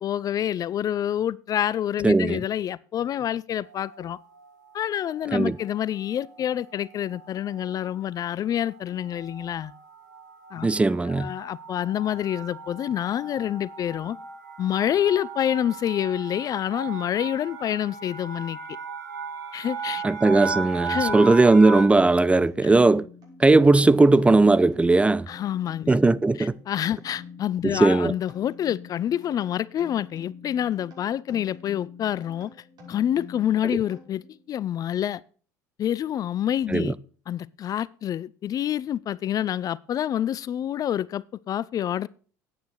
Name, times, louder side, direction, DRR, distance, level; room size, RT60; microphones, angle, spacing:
voice 1, 0.0-4.2 4.7-9.7 10.5-10.7 11.1-14.2 14.6-18.6 19.5-20.0 20.9-21.2 25.3-26.0 26.4-32.5 32.9-35.2 35.8-37.0 37.3-42.1, left 10 dB, 40° left, 0.4 m, -27 dB
voice 2, 2.0-2.4 5.3-5.6 10.6-11.3 20.0-23.1 23.4-25.3 25.9-26.5 27.6-28.1 33.7-33.8 36.7-36.9, right 3 dB, 15° right, 0.5 m, -18 dB
sound 1, 3.7-4.2 4.9-5.3 5.6-5.8 6.1-21.8, right 5 dB, 90° right, 2.2 m, -37 dB
sound 2, 22.3-34.5, left 5 dB, 45° right, 5.9 m, -46 dB
9.2 x 9.1 x 6.4 m
hypercardioid pair, 75°, 9 cm